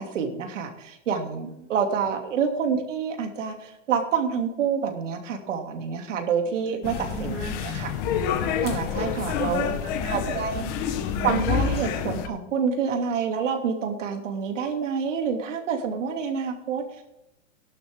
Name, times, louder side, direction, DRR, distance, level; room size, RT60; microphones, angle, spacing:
voice 1, 0.0-7.4 7.7-7.9 8.6-9.6 10.1-10.6 11.2-16.8, right 6 dB, 70° right, 4 dB, 2.8 m, -27 dB
voice 2, 1.3-2.1 6.4-7.8 9.0-11.0, right 4 dB, 30° right, -1 dB, 3.7 m, -41 dB
sound 1, 6.8-12.3, left 7 dB, 25° left, 0.9 m, -28 dB
17.5 x 11.5 x 3.7 m, 0.89 s
hypercardioid pair, 160°, 38 cm